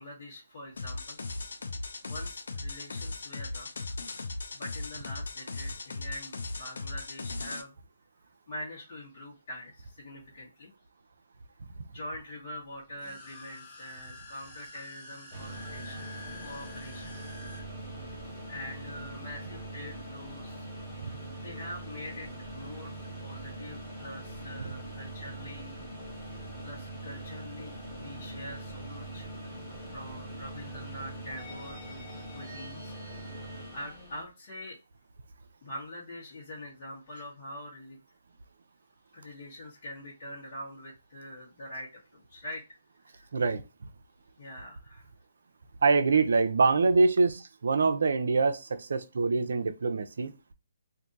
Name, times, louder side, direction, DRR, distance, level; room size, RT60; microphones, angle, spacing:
voice 1, 0.0-1.5 2.0-3.9 4.5-7.7 8.5-10.7 11.9-16.1 16.4-17.3 18.5-20.7 21.4-22.9 23.2-25.8 26.6-29.3 29.9-32.0 32.3-33.0 33.3-34.8 35.6-38.0 39.1-42.8 43.0-43.3 44.4-45.1, left 1 dB, 50° left, 1.2 m, -44 dB
sound 1, 0.8-7.6, left 3 dB, 80° left, 0.6 m, -38 dB
sound 2, 12.9-17.6, left 2 dB, 25° left, 1.2 m, -48 dB
sound 3, 15.3-34.2, right 2 dB, 10° left, 1.7 m, -42 dB
voice 2, 43.3-43.6 45.8-50.3, right 4 dB, 70° right, 0.6 m, -25 dB
2.7 x 2.6 x 3.7 m
hypercardioid pair, 160°, 0 cm